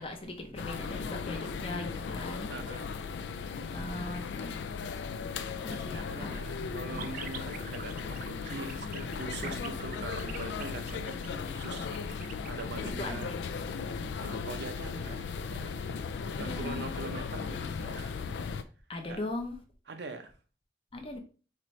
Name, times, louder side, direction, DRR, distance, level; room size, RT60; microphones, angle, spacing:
voice 1, 0.0-2.5 3.7-4.5 5.6-6.4 12.8-13.4 16.3-16.8 18.9-19.6 20.9-21.2, left 2 dB, 30° left, 0.6 m, -39 dB
sound 1, 0.6-18.6, left 5 dB, 85° left, 0.4 m, -37 dB
voice 2, 2.5-2.9 3.6-3.7 5.7-13.3 14.2-15.3 15.5-15.7 16.4-18.1 19.1-19.2 19.9-20.3, right 3 dB, 80° right, 0.7 m, -43 dB
sound 2, 7.0-12.6, right 8 dB, 50° right, 0.4 m, -44 dB
4.3 x 2.6 x 3.1 m
head